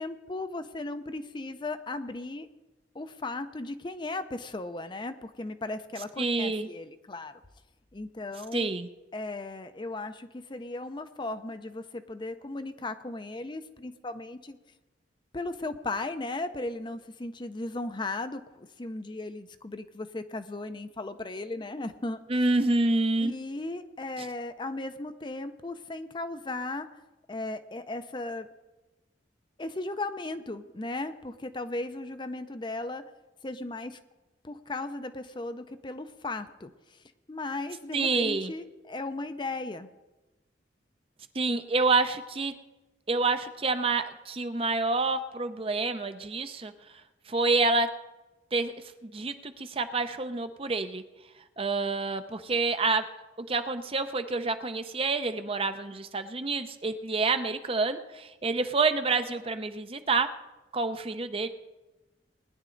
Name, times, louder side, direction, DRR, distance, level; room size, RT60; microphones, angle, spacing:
voice 1, 0.0-2.5 2.9-7.4 7.9-8.7 9.1-14.6 15.3-22.2 23.2-26.9 27.3-28.5 29.6-33.1 33.4-34.0 34.4-39.9, left 2 dB, 25° left, 10 dB, 0.5 m, -36 dB
voice 2, 6.2-6.7 8.5-8.9 22.3-23.3 37.9-38.5 41.3-42.5 43.1-47.0 47.3-47.9 48.5-48.7 49.0-51.0 51.6-53.0 53.4-60.3 60.7-61.5, right 3 dB, 30° right, 9 dB, 0.6 m, -28 dB
19.5 x 10.5 x 3.8 m, 1.1 s
head